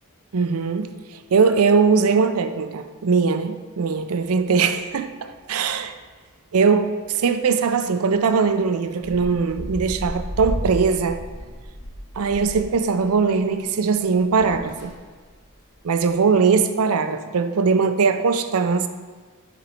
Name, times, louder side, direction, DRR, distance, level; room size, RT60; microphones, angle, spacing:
voice 1, 0.3-5.9 6.5-11.2 12.2-14.9 15.8-18.9, right 5 dB, 70° right, 10 dB, 0.5 m, -20 dB
sound 1, 4.3-4.9 5.2-5.3 5.6-6.2 6.7-6.9 7.2-7.3 8.1-8.3 8.9-13.7 13.9-15.6 15.9-16.1, equal, 85° left, 2.3 m, -33 dB
10.0 x 4.1 x 4.4 m, 1.4 s
head